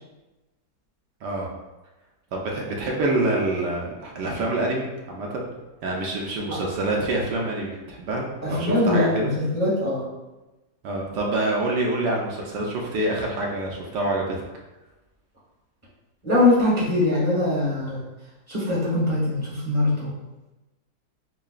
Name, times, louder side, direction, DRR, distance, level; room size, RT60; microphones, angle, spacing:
voice 1, 2.3-5.4 5.8-8.2 8.5-9.3 10.8-14.4, right 2 dB, 75° right, -1 dB, 1.2 m, -26 dB
voice 2, 8.4-10.0 16.2-18.0 18.5-20.1, left 2 dB, 10° left, -8 dB, 1.0 m, -22 dB
5.5 x 2.2 x 2.4 m, 1.1 s
omnidirectional pair, 1.9 m